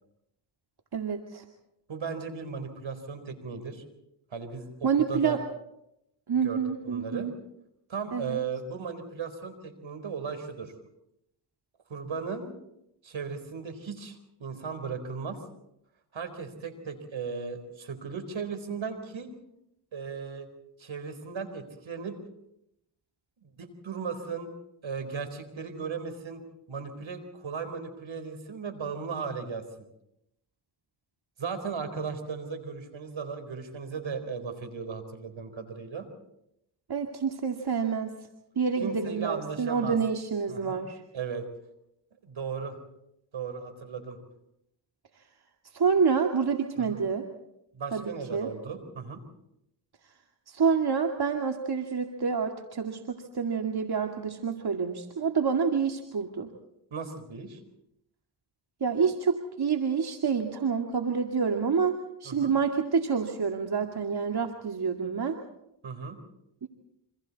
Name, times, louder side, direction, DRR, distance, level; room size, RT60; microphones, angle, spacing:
voice 1, 0.9-1.4 4.8-5.4 6.3-7.3 8.1-8.4 36.9-38.2 38.6-41.0 45.7-47.3 47.9-48.5 50.5-56.5 58.8-65.4 66.6-66.7, right 6 dB, 50° right, 3 dB, 2.3 m, -28 dB
voice 2, 1.9-3.8 4.3-5.4 6.4-7.3 7.9-10.7 11.9-12.5 13.0-15.4 16.1-19.3 19.9-20.5 20.8-22.2 23.4-24.5 24.8-26.4 26.7-29.6 31.4-36.1 38.8-40.0 40.5-40.8 41.1-41.5 42.2-42.8 43.3-44.2 46.8-47.0 47.7-49.2 56.9-57.6 62.2-62.5 65.8-66.2, right 5 dB, 65° right, 9 dB, 4.2 m, -36 dB
28.5 x 25.5 x 4.2 m, 0.82 s
supercardioid pair, 45°, 49 cm